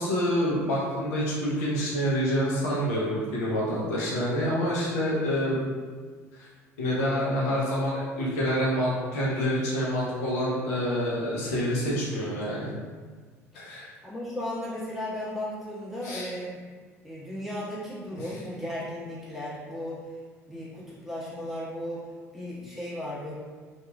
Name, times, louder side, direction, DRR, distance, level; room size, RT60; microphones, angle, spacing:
voice 1, 0.0-5.6 6.8-12.7 13.5-13.9 16.0-16.3, equal, 75° left, -6 dB, 0.7 m, -27 dB
voice 2, 14.0-16.6 17.0-20.2 20.5-22.0 22.3-23.3, left 1 dB, 5° right, -10 dB, 1.3 m, -35 dB
2.8 x 2.6 x 2.2 m, 1.5 s
hypercardioid pair, 65°, 8 cm